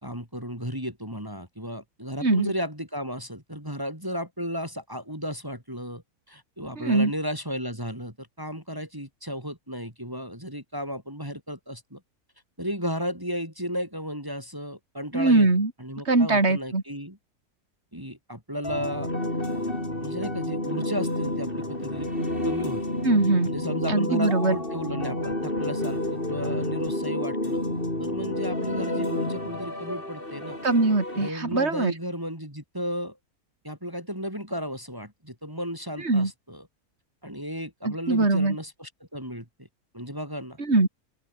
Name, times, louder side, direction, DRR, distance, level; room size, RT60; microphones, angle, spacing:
voice 1, 0.0-12.0 12.6-15.5 15.8-17.2 17.9-19.1 20.0-22.8 23.4-27.6 28.0-30.6 31.1-33.2 33.6-36.7 37.2-39.7 39.9-40.6, equal, 15° right, 5.8 m, -34 dB
voice 2, 2.2-2.5 6.8-7.1 15.1-15.7 16.1-16.8 23.0-23.5 23.9-24.6 30.6-31.9 36.0-36.3 37.8-38.6 40.6-40.9, right 3 dB, 45° right, 4.1 m, -22 dB
sound 1, 18.6-31.3, left 1 dB, 35° left, 6.9 m, -30 dB
open air
omnidirectional pair, 1.6 m